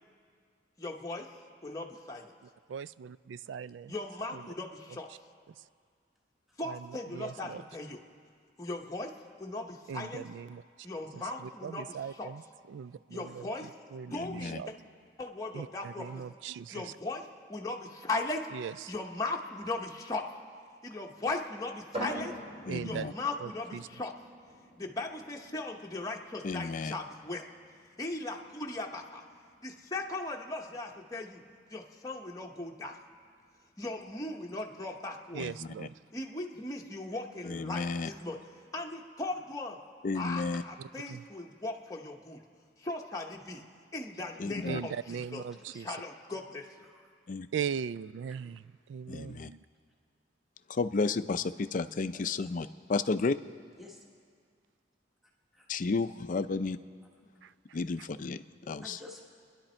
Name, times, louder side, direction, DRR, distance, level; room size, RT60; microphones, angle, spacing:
voice 1, 0.8-1.3 1.6-2.3 3.9-5.1 6.6-8.0 8.6-9.1 9.4-10.3 10.8-12.3 13.1-13.7 14.0-14.7 15.2-16.2 16.7-18.5 18.9-20.2 20.8-22.4 22.8-24.1 24.8-27.5 28.0-29.2 29.6-31.4 31.7-33.0 33.8-35.4 36.1-38.4 38.7-39.8 40.1-42.4 42.8-43.6 43.9-45.4 45.8-46.7, left 2 dB, 20° left, 0 dB, 0.9 m, -38 dB
voice 2, 2.7-3.9 4.3-4.5 6.6-7.6 9.9-10.6 11.1-12.4 12.7-13.5 13.9-14.7 15.5-16.9 18.5-18.9 22.7-23.1 23.4-23.9 35.3-35.9 41.1-41.2 44.7-45.9 47.5-48.6 48.9-49.6 57.4-57.5 58.0-58.1, right 7 dB, 85° right, 18 dB, 0.3 m, -39 dB
voice 3, 14.1-14.6 22.7-23.1 26.4-26.9 35.4-35.9 37.4-38.1 40.0-40.6 44.4-44.8 47.3-47.5 49.1-49.5 50.7-53.4 55.7-56.8 57.7-59.0, left 4 dB, 45° left, 12 dB, 0.5 m, -32 dB
sound 1, 21.9-35.4, equal, 35° right, 3.8 m, -48 dB
voice 4, 53.8-54.1 55.5-55.7 58.6-59.2, left 1 dB, ahead, -2 dB, 1.4 m, -52 dB
30.0 x 11.0 x 4.4 m, 2.1 s
head